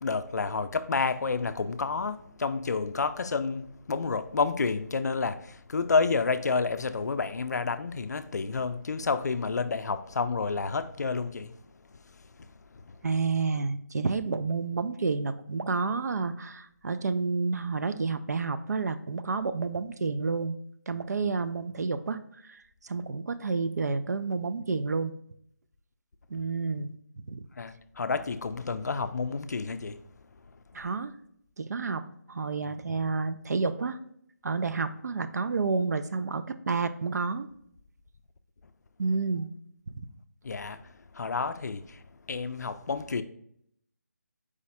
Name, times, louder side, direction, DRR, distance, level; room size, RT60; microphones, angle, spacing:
voice 1, 0.0-11.5 12.7-12.8 27.6-30.0 40.4-43.2, left 4 dB, 70° left, 0.3 m, -30 dB
voice 2, 13.0-20.6 20.9-25.1 26.3-27.0 27.3-27.4 30.7-31.1 31.6-34.0 34.4-37.5 39.0-39.5, right 4 dB, 70° right, 0.4 m, -30 dB
4.8 x 2.1 x 4.1 m
figure-of-eight pair, 170°, 9 cm